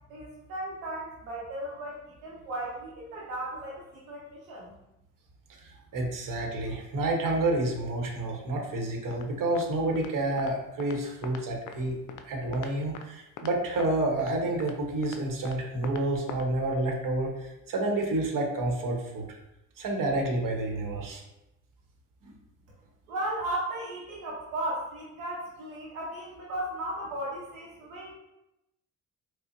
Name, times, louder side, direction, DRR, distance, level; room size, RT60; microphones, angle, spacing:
voice 1, 0.1-4.7 23.1-28.1, right 1 dB, 90° right, -4 dB, 0.7 m, -36 dB
voice 2, 5.6-12.0 12.2-19.3 19.8-21.2, right 2 dB, 50° right, 1 dB, 1.0 m, -29 dB
sound 1, 9.1-9.3 9.6-9.7 10.0-10.1 10.4-10.5 10.8-11.0 11.2-11.8 12.1-12.2 12.5-13.1 13.4-13.5 13.8-13.9 14.2-14.3 14.6-14.8 15.0-15.2 15.5-15.6 15.8-16.0 16.3-16.4 16.7-16.8, left 7 dB, 50° left, 0.5 m, -42 dB
4.9 x 2.1 x 2.5 m, 0.90 s
hypercardioid pair, 55°, 40 cm